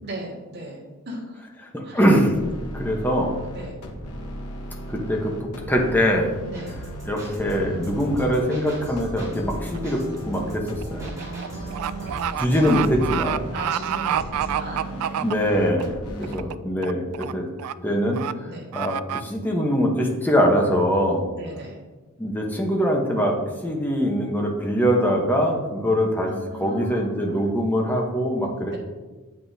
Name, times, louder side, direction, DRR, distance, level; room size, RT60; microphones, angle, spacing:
voice 1, 0.0-1.5 1.8-2.0 3.5-3.8 6.4-6.8 11.2-12.6 13.5-15.2 16.2-16.4 18.5-18.7 21.3-21.8 26.2-27.4 28.7-28.8, right 1 dB, 50° right, -3 dB, 2.0 m, -38 dB
voice 2, 1.7-2.3 2.7-3.3 4.9-6.3 7.1-11.1 12.4-13.5 15.2-17.5 17.8-18.2 18.7-21.3 22.2-23.4 23.6-26.3 26.6-28.8, equal, 10° left, 0 dB, 1.0 m, -23 dB
sound 1, 2.3-16.3, equal, 85° left, 1.2 m, -36 dB
sound 2, 6.5-13.1, right 1 dB, 15° right, 2.5 m, -39 dB
sound 3, 9.7-10.0 10.3-15.8 16.2-16.6 16.8-17.3 17.6-17.7 18.1-18.3 18.7-19.2, right 10 dB, 85° right, 0.3 m, -28 dB
9.2 x 7.8 x 2.8 m, 1.3 s
head